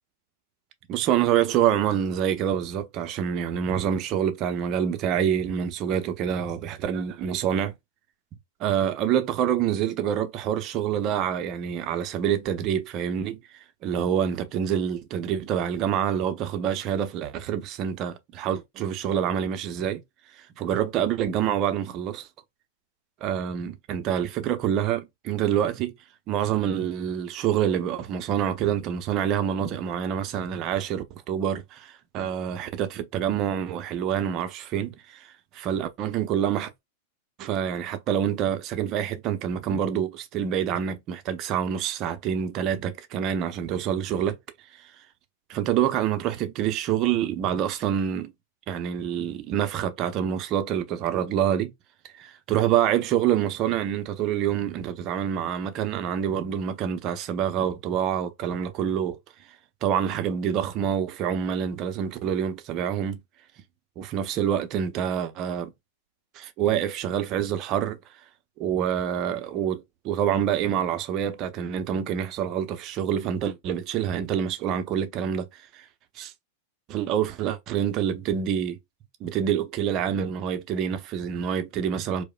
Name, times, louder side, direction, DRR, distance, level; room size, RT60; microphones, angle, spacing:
voice 1, 0.9-7.7 8.6-20.0 20.4-22.3 23.2-25.9 26.3-35.3 35.5-36.7 37.4-44.4 44.8-44.9 45.5-48.3 48.7-51.7 52.1-59.2 59.8-63.2 64.0-65.7 66.3-68.0 68.6-75.5 75.7-75.8 76.2-76.3 76.9-78.8 79.2-82.2, right 9 dB, 35° right, 0.6 m, -26 dB
4.7 x 2.1 x 2.3 m
figure-of-eight pair, 95°, 0 cm